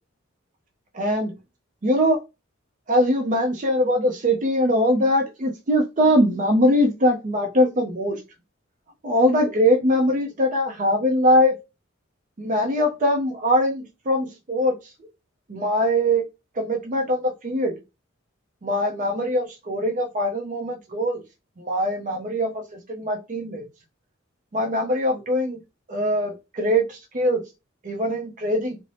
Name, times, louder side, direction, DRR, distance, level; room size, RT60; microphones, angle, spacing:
voice 1, 0.9-1.4 1.8-2.2 2.9-8.2 9.0-11.6 12.4-14.8 15.5-16.2 16.6-17.7 18.6-21.2 21.6-23.7 24.5-25.6 25.9-27.4 27.8-28.8, equal, 40° right, 2 dB, 0.5 m, -22 dB
2.6 x 2.0 x 3.1 m, 0.26 s
head